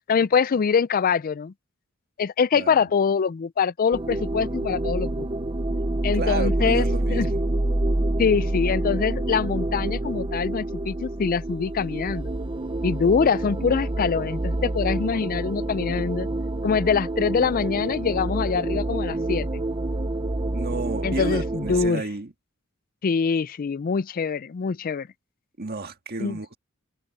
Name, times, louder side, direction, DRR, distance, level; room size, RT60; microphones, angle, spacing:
voice 1, 0.1-1.5 2.2-5.3 6.0-7.3 8.2-12.3 12.8-16.3 16.6-19.6 21.0-22.1 23.0-25.1 26.2-26.4, left 6 dB, 45° left, 0.4 m, -24 dB
voice 2, 2.5-2.9 6.1-7.5 20.5-22.3 25.6-26.6, right 3 dB, 50° right, 1.7 m, -31 dB
sound 1, 3.9-21.9, right 1 dB, 25° right, 0.8 m, -27 dB
head